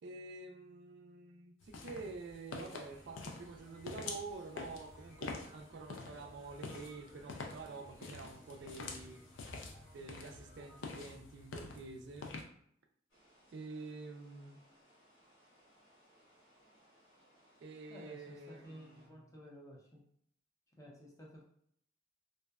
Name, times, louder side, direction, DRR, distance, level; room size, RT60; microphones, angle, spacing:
voice 1, 0.0-9.2 9.9-12.4 13.5-14.6 17.6-19.0, right 3 dB, 60° right, 5 dB, 0.3 m, -48 dB
sound 1, 1.6-12.4, left 4 dB, 70° left, 0.4 m, -47 dB
sound 2, 2.8-10.8, equal, 20° right, 0.7 m, -61 dB
sound 3, 13.1-19.1, equal, 90° left, 1.1 m, -67 dB
voice 2, 17.9-20.0 20.8-21.4, equal, 15° left, -4 dB, 0.6 m, -53 dB
2.6 x 2.1 x 2.3 m, 0.68 s
head